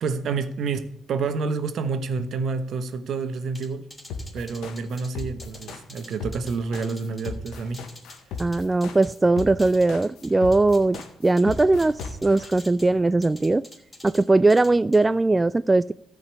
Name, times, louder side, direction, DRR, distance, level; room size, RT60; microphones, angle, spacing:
voice 1, 0.0-3.9 4.3-7.8, right 4 dB, 65° right, 1.1 m, -28 dB
sound 1, 3.6-9.1 9.4-11.1 11.4-12.9 13.2-14.2 14.5-15.0, left 1 dB, 15° left, 3.0 m, -46 dB
sound 2, 4.1-12.5, left 4 dB, 75° left, 1.4 m, -35 dB
voice 2, 8.4-13.6 14.0-15.9, right 2 dB, 25° right, 0.3 m, -20 dB
13.5 x 5.2 x 8.2 m
hypercardioid pair, 50°, 0 cm